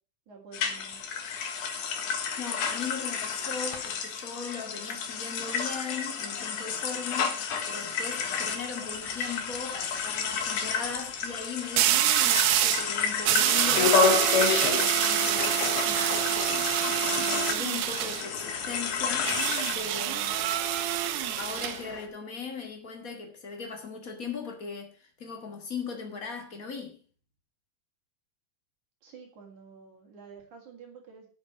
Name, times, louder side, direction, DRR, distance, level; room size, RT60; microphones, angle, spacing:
voice 1, 0.3-1.0 29.0-31.3, right 5 dB, 50° right, 4.3 m, -49 dB
sound 1, 0.5-19.8, left 6 dB, 60° left, 2.6 m, -32 dB
voice 2, 2.4-14.0 14.5-19.4 19.7-20.6 21.4-27.0, left 5 dB, 35° left, 1.4 m, -39 dB
sound 2, 8.6-9.0 11.8-12.9 13.3-18.3 19.2-21.8, right 12 dB, 85° right, 2.9 m, -26 dB
sound 3, 13.5-22.1, left 5 dB, 75° left, 3.2 m, -30 dB
8.6 x 7.5 x 7.5 m
omnidirectional pair, 4.6 m